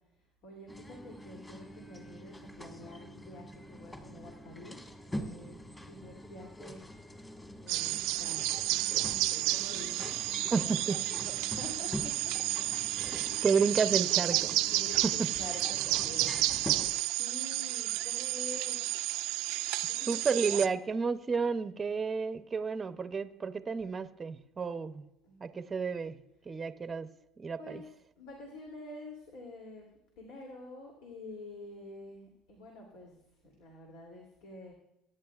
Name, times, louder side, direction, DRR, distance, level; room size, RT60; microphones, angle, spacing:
voice 1, 0.4-4.8 5.1-6.8 7.6-12.3 13.2-13.6 14.7-18.8 19.9-20.6 25.2-25.6 27.6-29.9 30.1-33.2 33.4-34.7, left 2 dB, 85° left, 0 dB, 2.7 m, -48 dB
sound 1, 0.7-16.9, equal, 15° left, 1.5 m, -45 dB
sound 2, 7.7-20.7, right 17 dB, 85° right, 0.4 m, -31 dB
voice 2, 13.0-14.6 20.1-25.0 25.4-27.1 27.4-27.8, right 5 dB, 25° right, 10 dB, 0.6 m, -31 dB
23.5 x 10.5 x 2.4 m, 0.84 s
cardioid pair, 135°, 0 cm